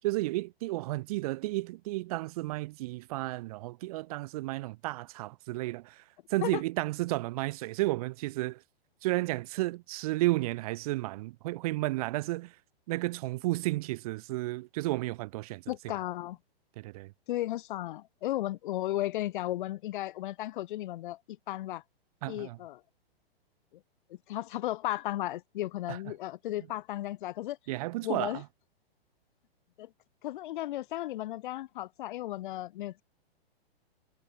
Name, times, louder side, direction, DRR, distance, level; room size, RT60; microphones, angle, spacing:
voice 1, 0.0-6.0 6.3-8.6 9.0-12.5 12.9-15.6 16.8-17.1 22.2-22.6 25.9-26.0 27.7-28.4, right 19 dB, 35° right, 0.6 m, -32 dB
voice 2, 15.7-16.4 17.3-21.8 22.3-22.8 24.1-27.6 28.0-28.4 29.8-29.9 30.2-33.0, left 15 dB, 50° left, 0.7 m, -35 dB
hypercardioid pair, 145°, 31 cm